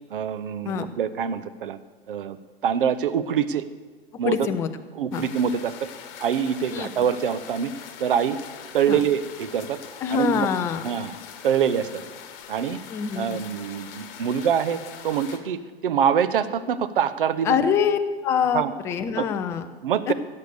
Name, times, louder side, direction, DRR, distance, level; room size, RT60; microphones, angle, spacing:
voice 1, 0.1-1.8 2.1-2.4 2.6-3.6 4.2-4.4 5.0-5.9 6.2-7.7 8.0-8.4 8.7-9.8 10.1-10.5 10.8-11.1 11.4-12.0 12.5-12.8 13.2-17.6 18.5-18.7 19.2-19.3 19.8-20.1, right 8 dB, 55° right, 13 dB, 0.9 m, -24 dB
voice 2, 4.1-4.7 5.1-5.2 6.7-6.9 8.9-9.0 10.0-10.9 12.9-13.4 17.4-19.7 20.1-20.2, left 7 dB, 10° left, 9 dB, 0.3 m, -25 dB
sound 1, 5.1-15.4, left 8 dB, 35° left, 1.5 m, -42 dB
16.5 x 6.7 x 6.8 m, 1.4 s
figure-of-eight pair, 100°, 31 cm